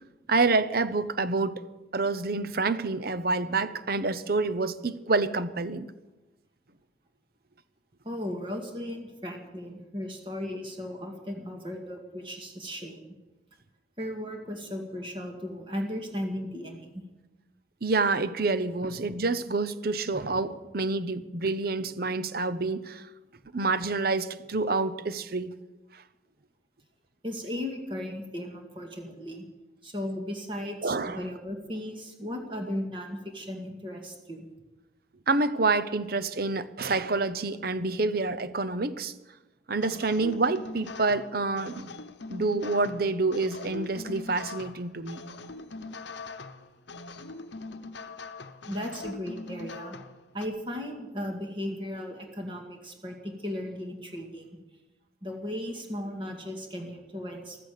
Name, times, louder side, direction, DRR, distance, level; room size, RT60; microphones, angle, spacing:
voice 1, 0.3-1.6 1.9-5.9 17.8-23.1 23.5-25.5 25.9-26.0 30.8-31.2 35.3-39.1 39.7-41.9 42.3-45.2, right 3 dB, 50° right, 0.8 m, -27 dB
voice 2, 8.0-13.1 14.0-17.0 27.2-29.4 29.8-34.5 48.6-50.0 50.3-54.5 55.2-57.6, left 1 dB, 25° right, 1.9 m, -36 dB
sound 1, 39.8-50.5, left 3 dB, 65° left, 0.9 m, -42 dB
15.0 x 13.5 x 6.7 m
head